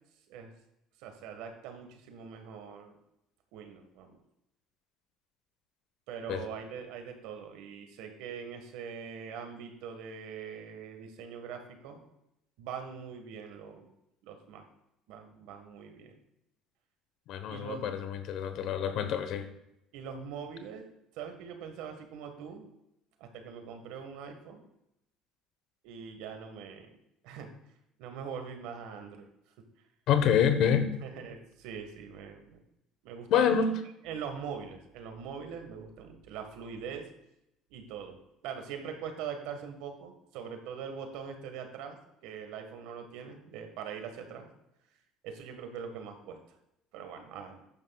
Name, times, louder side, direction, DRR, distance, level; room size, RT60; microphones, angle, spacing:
voice 1, 1.0-3.0 3.5-4.2 6.1-12.0 12.6-13.9 14.2-14.6 15.1-16.2 17.5-17.8 19.9-20.8 21.1-22.7 23.2-24.6 25.8-26.9 27.2-27.5 28.0-29.3 31.0-32.6 33.0-33.6 34.0-37.0 37.7-38.2 38.4-42.0 42.2-44.5 45.2-46.4 46.9-47.7, right 7 dB, 75° right, 5 dB, 1.6 m, -42 dB
voice 2, 17.3-19.5 30.1-30.9 33.3-33.7, left 8 dB, 65° left, 8 dB, 1.1 m, -27 dB
14.5 x 10.5 x 2.4 m, 0.84 s
supercardioid pair, 85°, 0 cm